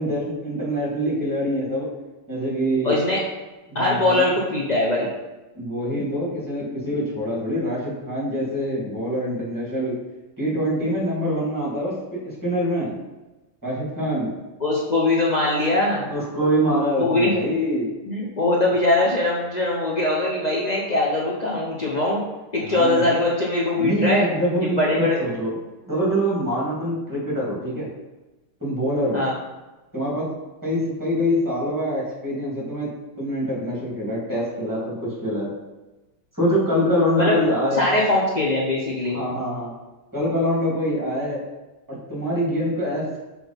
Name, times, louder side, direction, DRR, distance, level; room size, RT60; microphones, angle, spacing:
voice 1, 0.0-1.9 2.3-2.9 3.7-4.2 5.5-10.0 10.4-13.0 13.6-14.3 16.1-17.9 22.6-23.2 23.8-25.5 25.9-27.9 28.6-29.2 29.9-30.3 30.6-32.9 33.2-35.5 36.3-37.9 39.1-39.7 40.1-41.4 41.9-43.2, equal, 10° right, -6 dB, 2.6 m, -24 dB
voice 2, 2.8-3.2 3.7-5.1 14.6-16.1 17.0-17.3 18.1-22.2 22.5-24.3 24.6-25.2 29.1-29.3 37.2-37.4 37.8-39.2, left 2 dB, 55° left, -4 dB, 0.4 m, -21 dB
6.0 x 4.8 x 5.2 m, 1.1 s
omnidirectional pair, 2.2 m